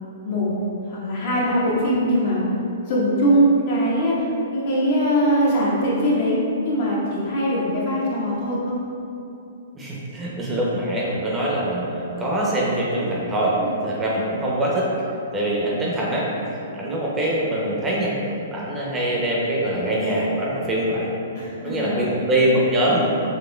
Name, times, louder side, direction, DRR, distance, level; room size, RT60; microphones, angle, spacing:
voice 1, 0.9-2.4 2.9-4.3 4.5-8.8 13.6-13.8 21.3-22.0, equal, 55° left, -6 dB, 1.0 m, -21 dB
voice 2, 9.7-13.5 13.8-14.9 15.3-16.3 16.7-18.1 18.5-21.1 21.6-23.0, right 1 dB, 15° right, -5 dB, 0.6 m, -23 dB
4.2 x 3.0 x 2.2 m, 2.8 s
hypercardioid pair, 130°, 0 cm